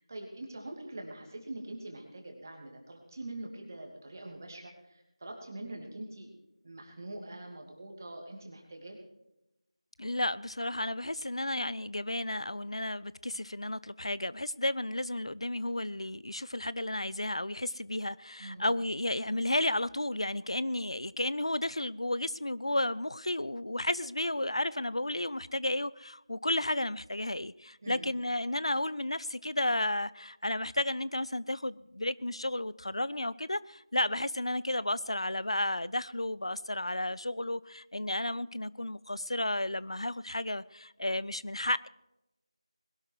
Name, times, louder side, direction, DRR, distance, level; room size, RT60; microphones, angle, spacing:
voice 1, 0.0-6.3 6.6-9.0 18.4-18.7 27.8-28.1, right 1 dB, 30° right, 2.7 m, -44 dB
voice 2, 10.0-41.9, left 1 dB, 65° left, 0.5 m, -33 dB
21.0 x 12.0 x 4.8 m
figure-of-eight pair, 170°, 3 cm